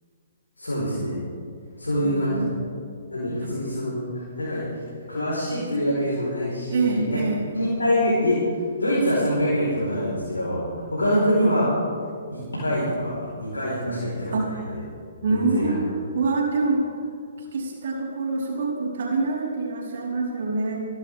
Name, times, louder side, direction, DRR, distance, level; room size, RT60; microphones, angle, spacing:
voice 1, 0.6-1.2 1.8-2.4 3.1-4.6 5.1-7.2 7.5-8.4 8.8-11.7 12.3-14.3 15.3-15.7, equal, 75° left, -8 dB, 4.8 m, -25 dB
voice 2, 1.9-2.6 6.7-7.4 11.1-11.3 13.8-14.5 15.2-16.8 17.5-20.8, right 3 dB, 55° right, -4 dB, 4.6 m, -26 dB
27.0 x 12.0 x 3.7 m, 2.1 s
figure-of-eight pair, 125°, 0 cm